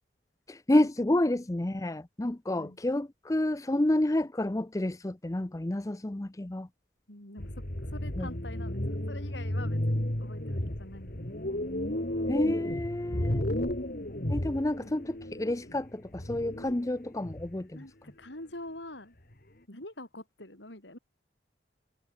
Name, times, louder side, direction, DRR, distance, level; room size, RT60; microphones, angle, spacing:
voice 1, 0.5-6.7 8.2-8.3 12.3-13.5 14.3-17.8, left 1 dB, 15° left, 0.5 m, -29 dB
voice 2, 7.1-7.5 7.9-11.2 13.1-13.5 17.7-19.1 19.7-21.0, left 1 dB, 75° left, 6.1 m, -45 dB
sound 1, 7.4-15.9 16.1-17.6, left 1 dB, 50° left, 2.8 m, -33 dB
head